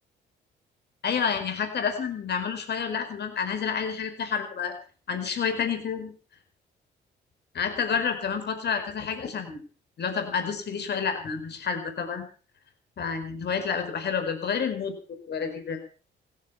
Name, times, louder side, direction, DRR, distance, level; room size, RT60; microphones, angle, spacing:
voice 1, 1.0-4.7 5.1-6.1 7.5-9.6 10.0-12.3 13.0-14.9 15.3-15.8, left 6 dB, 55° left, 7 dB, 4.7 m, -29 dB
16.5 x 14.0 x 5.7 m, 0.39 s
cardioid pair, 90°, 20 cm